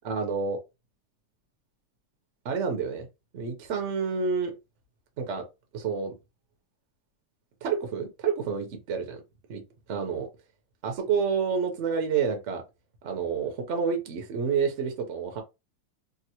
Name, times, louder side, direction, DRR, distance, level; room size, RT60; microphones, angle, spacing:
voice 1, 0.0-0.6 2.4-3.1 3.3-4.5 5.2-5.4 5.7-6.1 7.6-9.2 9.5-9.6 9.9-10.3 10.8-12.6 13.0-15.4, right 6 dB, 60° right, 0.7 m, -29 dB
3.8 x 2.1 x 2.9 m
omnidirectional pair, 2.3 m